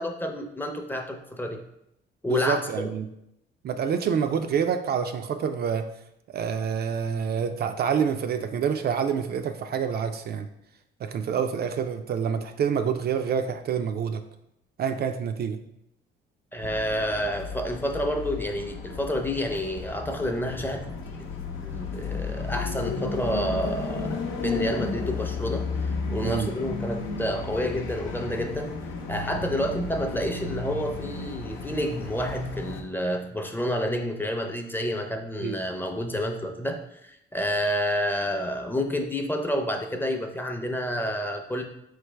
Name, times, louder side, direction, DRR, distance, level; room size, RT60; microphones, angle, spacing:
voice 1, 0.0-1.6 2.2-2.8 16.5-20.9 21.4-28.7 29.1-41.6, equal, 10° left, 4 dB, 0.6 m, -29 dB
voice 2, 2.3-3.1 3.6-5.9 6.3-10.5 11.0-14.2 14.8-15.6 26.2-26.5 35.4-35.6, right 7 dB, 55° right, 8 dB, 0.4 m, -27 dB
sound 1, 16.6-32.8, left 4 dB, 85° left, 0.7 m, -33 dB
4.3 x 3.2 x 3.3 m, 0.79 s
cardioid pair, 90°, 20 cm